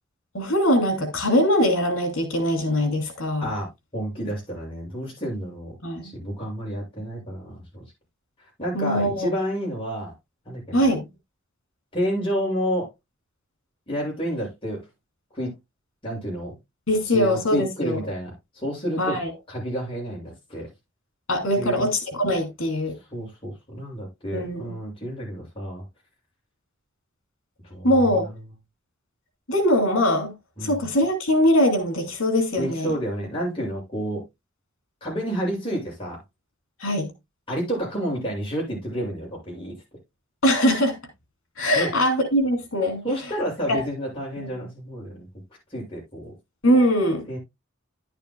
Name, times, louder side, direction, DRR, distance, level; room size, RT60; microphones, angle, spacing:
voice 1, 0.3-3.5 5.8-6.1 8.7-9.3 10.7-11.0 16.9-18.0 19.0-19.3 21.3-22.9 24.3-24.7 27.8-28.2 29.5-30.3 30.6-32.9 36.8-37.1 40.4-41.0 41.6-43.0 43.7-43.8 44.4-44.5 46.6-47.3, equal, 75° left, 2.8 m, -22 dB
voice 2, 3.4-5.7 6.0-7.9 8.6-10.1 10.5-10.9 11.9-12.9 13.9-14.8 15.3-15.6 16.0-16.5 17.1-19.2 19.5-20.7 21.6-21.9 23.1-25.8 27.7-27.9 30.6-30.8 32.6-34.2 35.0-36.2 37.5-39.8 41.7-41.9 43.0-45.3 45.7-46.3 47.3-47.4, equal, 25° left, 7.0 m, -30 dB
11.0 x 9.2 x 2.3 m
head